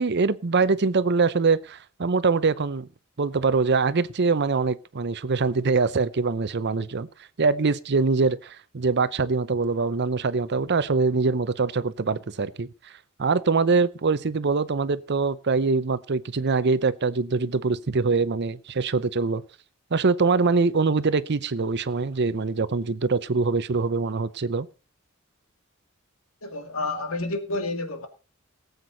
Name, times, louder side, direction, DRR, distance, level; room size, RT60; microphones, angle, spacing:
voice 1, 0.0-2.9 3.2-7.1 7.4-12.9 13.2-19.4 19.9-24.7, right 4 dB, 55° right, 0.7 m, -23 dB
voice 2, 26.4-28.1, left 2 dB, 90° left, 2.3 m, -29 dB
18.5 x 8.1 x 4.0 m
head